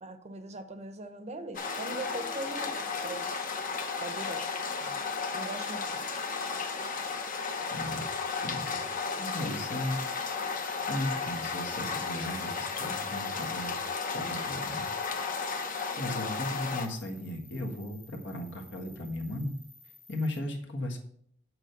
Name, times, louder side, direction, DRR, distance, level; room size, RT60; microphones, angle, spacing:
voice 1, 0.0-2.8 3.0-3.5 4.0-4.5 4.8-5.0 5.3-6.1 16.0-16.2, right 2 dB, 35° right, 9 dB, 0.7 m, -41 dB
sound 1, 1.5-16.9, left 5 dB, 45° left, 1.0 m, -34 dB
voice 2, 7.7-8.1 8.4-8.8 9.2-10.0 10.9-13.7 14.1-14.8 16.0-19.5 20.1-21.0, left 1 dB, 65° left, 3 dB, 1.6 m, -36 dB
sound 2, 9.3-20.4, left 3 dB, 85° left, 2.6 m, -56 dB
7.7 x 4.5 x 6.7 m, 0.66 s
head